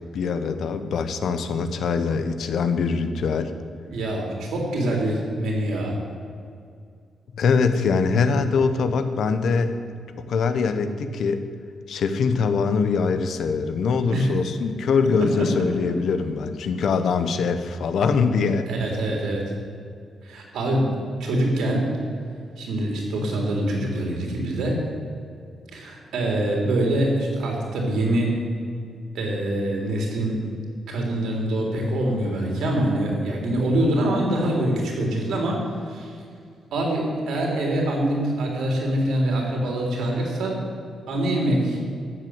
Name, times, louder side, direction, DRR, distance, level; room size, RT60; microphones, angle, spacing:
voice 1, 0.1-3.5 7.3-9.7 10.3-11.4 11.9-18.7, left 5 dB, 65° left, 9 dB, 1.0 m, -23 dB
voice 2, 3.9-6.0 14.1-14.3 15.4-15.5 18.7-19.4 20.2-20.9 21.2-21.9 22.6-24.8 25.7-28.5 29.1-30.4 30.9-35.6 35.9-36.1 36.7-40.6 41.1-41.8, right 1 dB, 85° right, 0 dB, 3.6 m, -24 dB
13.0 x 7.7 x 8.0 m, 2.3 s
wide cardioid pair, 160°, 0 cm